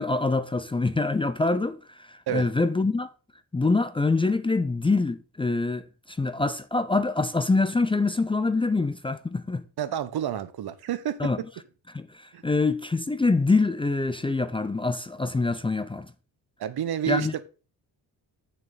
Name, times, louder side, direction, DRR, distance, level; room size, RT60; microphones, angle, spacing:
voice 1, 0.0-3.1 3.5-9.6 11.2-11.4 11.9-16.1 17.1-17.3, left 3 dB, 15° left, 0.5 m, -25 dB
voice 2, 9.8-11.2 12.3-12.4 16.6-17.4, right 10 dB, 65° right, 1.1 m, -29 dB
9.0 x 5.9 x 4.0 m
cardioid pair, 115°, 40 cm